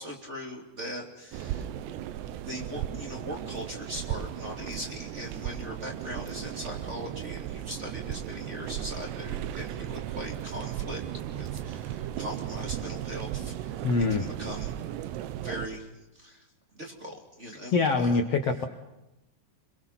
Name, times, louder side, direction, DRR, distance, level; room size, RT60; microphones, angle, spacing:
voice 1, 0.0-1.7 2.4-11.0 11.3-14.7 15.4-15.9 16.1-16.4 16.7-18.2, equal, 20° right, 1 dB, 2.5 m, -40 dB
sound 1, 1.3-15.7, right 11 dB, 90° right, 3.2 m, -36 dB
voice 2, 13.8-14.3 17.7-18.7, left 4 dB, 85° left, 5 dB, 1.3 m, -24 dB
29.0 x 22.0 x 5.9 m, 0.96 s
omnidirectional pair, 4.8 m